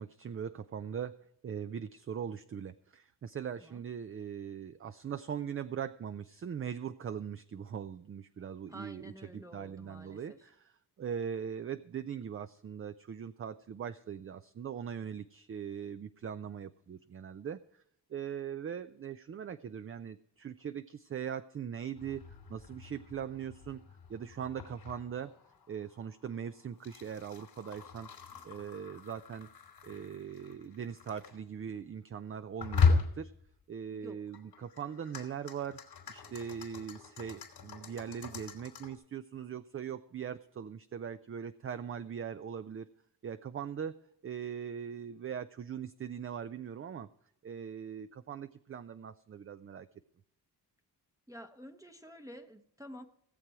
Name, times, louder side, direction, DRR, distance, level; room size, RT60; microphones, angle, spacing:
voice 1, 0.0-10.7 11.0-17.6 18.1-22.2 22.5-23.8 24.1-25.3 25.7-28.1 28.4-29.5 29.8-33.3 33.7-35.8 36.1-42.9 43.2-43.9 44.2-47.1 47.4-49.9, right 8 dB, 35° right, 11 dB, 0.4 m, -40 dB
voice 2, 8.7-10.4 33.9-34.2 51.3-53.0, equal, 10° right, 4 dB, 0.8 m, -49 dB
sound 1, 22.0-31.4 32.6-33.5 34.3-39.0, left 5 dB, 80° left, 2.7 m, -37 dB
17.5 x 7.5 x 4.7 m, 0.75 s
wide cardioid pair, 110°, 40 cm